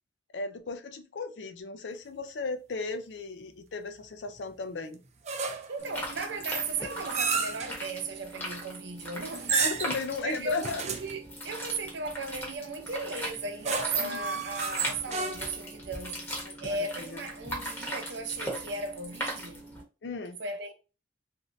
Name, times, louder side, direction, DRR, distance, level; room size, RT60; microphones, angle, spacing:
voice 1, 0.3-5.0 9.5-10.8 14.0-14.4 16.4-17.2 20.0-20.4, left 4 dB, 85° left, 0.5 m, -36 dB
sound 1, 5.3-5.8 6.4-7.7 9.3-10.1 10.6-11.1 13.4-15.7, right 5 dB, 40° right, 0.4 m, -31 dB
voice 2, 5.7-9.6 10.2-16.3 16.6-19.6 20.4-20.7, right 3 dB, 80° right, 0.7 m, -36 dB
sound 2, 5.8-19.8, equal, 10° left, 0.9 m, -39 dB
3.1 x 2.7 x 2.6 m
head